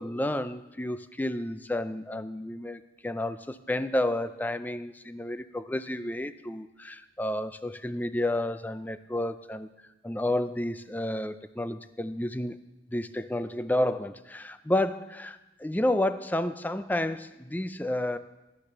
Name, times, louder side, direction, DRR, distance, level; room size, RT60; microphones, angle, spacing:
voice 1, 0.0-9.7 10.0-12.6 12.9-18.2, left 1 dB, 10° left, 12 dB, 0.4 m, -31 dB
12.0 x 9.9 x 6.7 m, 1.0 s
head